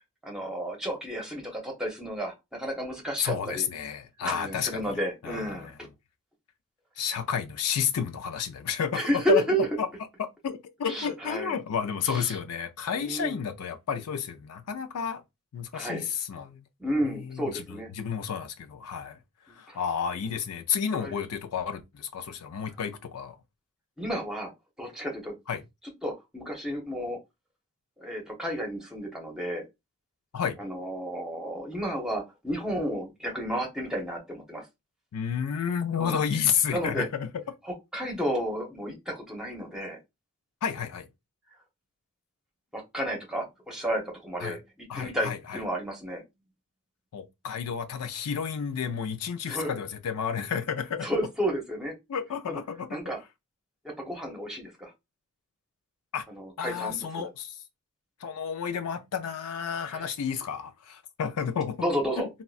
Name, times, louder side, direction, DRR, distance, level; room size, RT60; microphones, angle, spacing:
voice 1, 0.2-3.7 4.2-5.7 8.9-9.7 10.9-11.6 12.0-12.4 12.9-13.4 15.7-16.1 16.8-17.9 19.5-19.8 21.0-21.2 24.0-24.5 24.8-25.4 26.0-27.2 28.0-29.6 30.6-34.7 36.0-36.2 36.7-37.1 37.6-40.0 42.7-44.6 44.9-46.2 49.5-49.7 51.0-51.9 52.5-52.6 52.9-53.2 53.8-54.9 56.3-57.3 59.9-60.0 61.8-62.3, right 1 dB, 5° right, 0.8 m, -32 dB
voice 2, 3.2-4.9 5.2-5.7 7.0-9.4 9.8-9.9 10.2-15.2 15.5-16.6 17.0-17.6 17.9-19.2 19.5-23.4 25.5-25.6 30.3-30.6 35.1-37.5 40.6-41.1 44.4-44.6 44.9-45.6 47.1-51.1 52.1-53.0 56.1-56.3 56.6-57.6 58.2-61.8 62.2-62.3, left 7 dB, 90° left, 0.4 m, -31 dB
3.6 x 2.1 x 2.4 m
head